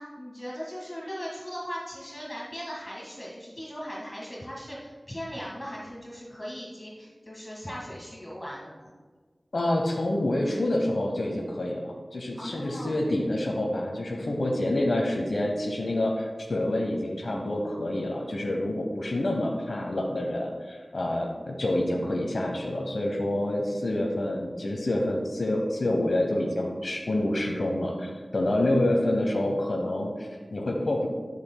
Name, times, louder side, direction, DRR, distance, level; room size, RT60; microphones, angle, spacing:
voice 1, 0.0-8.9 12.3-13.0, equal, 25° left, -5 dB, 1.6 m, -39 dB
voice 2, 9.5-31.1, left 1 dB, 75° left, 0 dB, 0.8 m, -27 dB
12.0 x 6.6 x 2.2 m, 1.4 s
wide cardioid pair, 60°, 0 cm